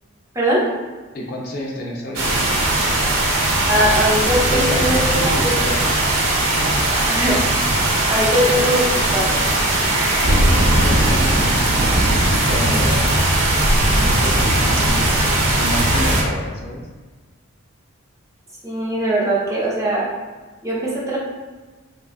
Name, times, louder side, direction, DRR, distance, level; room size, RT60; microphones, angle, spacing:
voice 1, 1.1-2.4 4.5-5.9 6.6-6.8 10.2-12.1 12.5-13.2 14.0-16.8, left 1 dB, 45° left, -2 dB, 0.5 m, -29 dB
sound 1, 2.2-16.2, right 1 dB, 75° right, 0.6 m, -18 dB
voice 2, 3.7-5.6 7.1-7.4 8.1-9.5 18.6-20.0 20.6-21.2, equal, 15° right, -6 dB, 0.6 m, -20 dB
3.3 x 2.7 x 2.4 m, 1.3 s
head